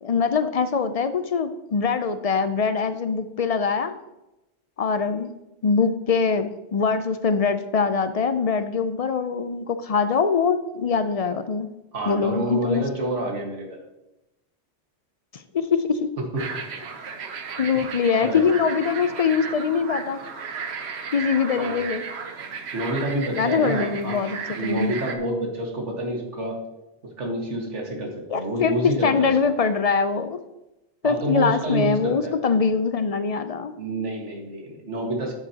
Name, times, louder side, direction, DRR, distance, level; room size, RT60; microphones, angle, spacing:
voice 1, 0.0-3.9 4.8-5.3 5.6-11.7 12.1-12.8 15.5-16.2 17.6-20.2 21.1-22.0 23.3-24.9 28.3-28.7 29.0-30.4 31.0-33.7, left 5 dB, 50° left, 10 dB, 0.4 m, -23 dB
voice 2, 11.9-13.8 16.3-16.5 18.2-18.5 21.5-21.8 22.7-26.6 27.2-29.5 31.0-32.4 33.7-35.3, right 1 dB, 85° right, 0 dB, 2.0 m, -28 dB
sound 1, 16.4-25.2, right 5 dB, 65° right, 1.1 m, -35 dB
12.5 x 6.9 x 2.8 m, 0.95 s
omnidirectional pair, 1.2 m